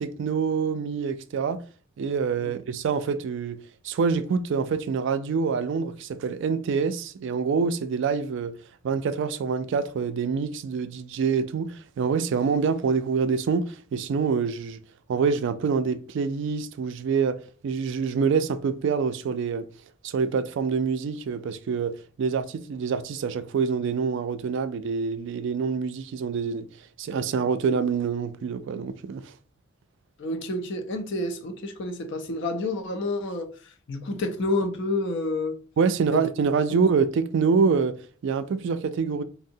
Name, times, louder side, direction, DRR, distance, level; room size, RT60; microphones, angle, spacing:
voice 1, 0.0-1.6 2.0-3.6 3.8-8.5 8.8-14.8 15.1-19.7 20.0-21.9 22.2-26.7 27.0-29.3 35.8-39.2, right 5 dB, 60° right, 0.3 m, -26 dB
voice 2, 30.2-35.6 36.1-36.2 36.7-36.8, left 2 dB, 60° left, 0.5 m, -29 dB
3.6 x 2.0 x 2.6 m
head